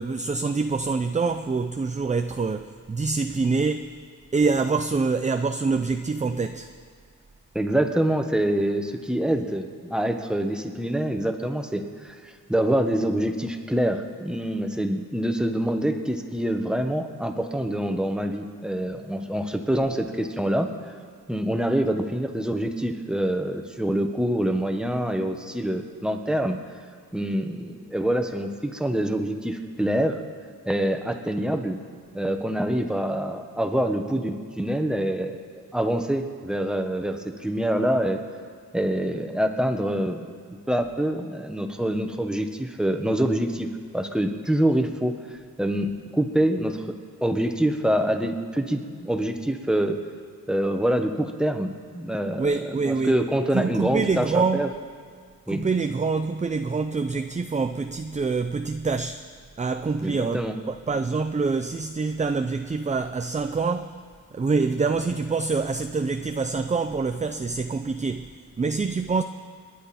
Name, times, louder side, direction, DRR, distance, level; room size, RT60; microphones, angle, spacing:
voice 1, 0.0-3.9 4.3-6.7 52.4-53.2 53.5-54.7 55.5-59.2 59.6-63.9 64.3-68.3 68.6-69.2, right 4 dB, 20° right, 8 dB, 0.4 m, -25 dB
voice 2, 7.5-20.9 21.3-26.6 27.1-30.2 30.6-31.8 32.1-35.4 35.7-38.2 38.7-40.3 40.7-47.0 47.2-50.0 50.5-54.7 55.5-55.6 60.0-60.6, right 1 dB, ahead, 5 dB, 1.2 m, -26 dB
29.0 x 10.0 x 4.3 m, 2.1 s
wide cardioid pair, 110°, 34 cm